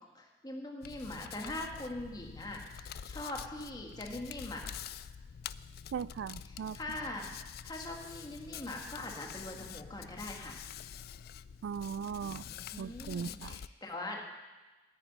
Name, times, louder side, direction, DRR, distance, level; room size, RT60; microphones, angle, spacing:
voice 1, 0.1-4.6 6.5-7.3 7.6-10.6 12.2-14.2, left 1 dB, 25° left, 1 dB, 1.8 m, -42 dB
Hands, 0.8-13.7, left 8 dB, 55° left, 0.3 m, -47 dB
voice 2, 5.9-6.8 11.6-12.4 12.8-13.6, right 7 dB, 75° right, 20 dB, 0.3 m, -38 dB
9.8 x 9.1 x 9.4 m, 1.2 s
head